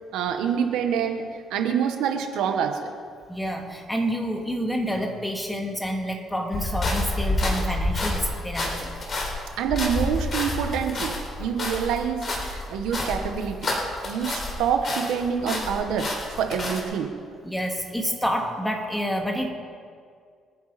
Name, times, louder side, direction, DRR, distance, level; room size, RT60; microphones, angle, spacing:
voice 1, 0.1-2.9 9.6-11.1 11.4-13.7 14.0-17.1, right 7 dB, 85° right, 5 dB, 1.4 m, -26 dB
voice 2, 3.3-8.9 11.4-11.5 17.4-19.5, equal, 5° left, 1 dB, 2.5 m, -28 dB
sound 1, 6.5-14.6 14.8-16.8, left 2 dB, 40° left, 4.2 m, -29 dB
27.5 x 9.5 x 4.3 m, 2.1 s
cardioid pair, 95°, 0 cm